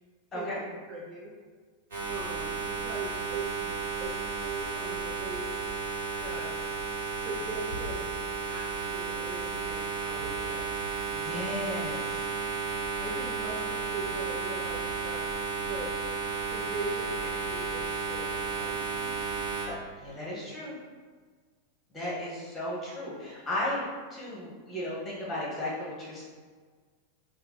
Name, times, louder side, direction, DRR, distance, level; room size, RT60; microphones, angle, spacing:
voice 1, 0.3-1.3 2.1-5.5 6.2-6.5 7.1-8.1 8.5-11.0 13.0-15.3 15.7-16.0 16.4-19.1, right 2 dB, 30° right, -2 dB, 0.4 m, -40 dB
sound 1, 1.9-19.6, right 5 dB, 60° right, 1.0 m, -33 dB
voice 2, 11.1-12.2 19.7-20.8 21.9-26.2, left 1 dB, 15° left, -6 dB, 1.2 m, -35 dB
2.8 x 2.1 x 4.0 m, 1.5 s
figure-of-eight pair, 90°, 0 cm